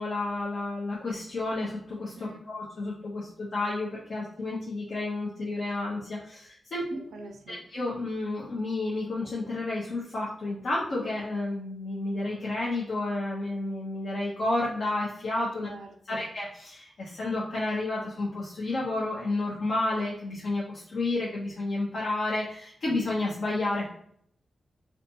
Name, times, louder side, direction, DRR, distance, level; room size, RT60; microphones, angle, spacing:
voice 1, 0.0-6.9 7.5-15.7 16.1-23.9, left 2 dB, 65° left, -6 dB, 0.7 m, -31 dB
voice 2, 6.9-7.6 15.6-16.3, right 3 dB, 80° right, 3 dB, 0.4 m, -46 dB
2.5 x 2.4 x 2.7 m, 0.65 s
cardioid pair, 45°, 0 cm